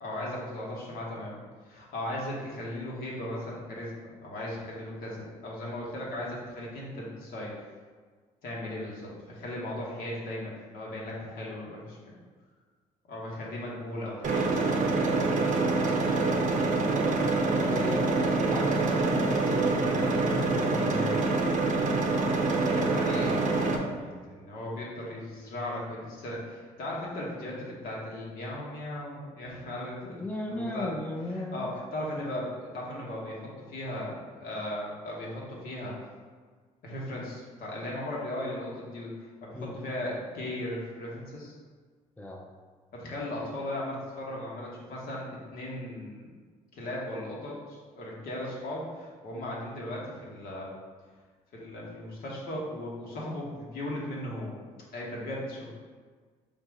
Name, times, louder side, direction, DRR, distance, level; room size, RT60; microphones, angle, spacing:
voice 1, 0.0-3.9 4.2-7.5 8.4-12.2 13.1-14.7 14.9-15.1 22.6-23.5 23.8-30.9 31.3-35.9 36.8-41.5 42.9-46.3 46.7-50.7 51.5-54.6 54.9-55.7, left 1 dB, 75° left, -4 dB, 1.2 m, -37 dB
sound 1, 14.2-23.8, right 3 dB, 55° right, 0.6 m, -26 dB
voice 2, 17.7-18.1 18.5-21.2 30.2-31.7 39.6-39.7 42.2-42.5, left 2 dB, 10° left, 0 dB, 0.6 m, -35 dB
3.8 x 2.6 x 4.7 m, 1.5 s
supercardioid pair, 75°, 16 cm